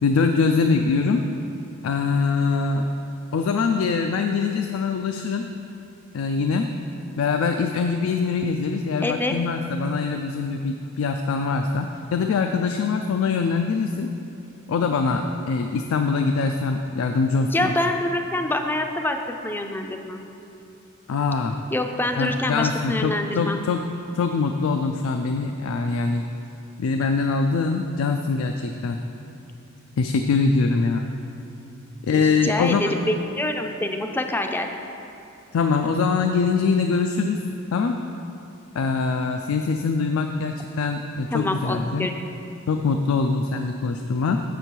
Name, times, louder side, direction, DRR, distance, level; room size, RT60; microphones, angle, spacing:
voice 1, 0.0-1.2 1.8-2.9 3.3-5.5 6.1-6.7 7.2-14.1 14.7-17.7 21.1-21.6 22.2-23.8 24.1-26.2 26.8-29.0 30.0-31.0 32.1-32.9 35.5-37.4 37.7-38.0 38.7-42.1 42.7-44.4, left 4 dB, 85° left, 5 dB, 0.4 m, -23 dB
voice 2, 9.0-9.3 17.5-19.2 19.4-20.2 21.7-23.6 32.1-34.7 41.3-42.1, left 1 dB, 10° left, 5 dB, 0.4 m, -26 dB
6.8 x 6.6 x 4.5 m, 2.8 s
head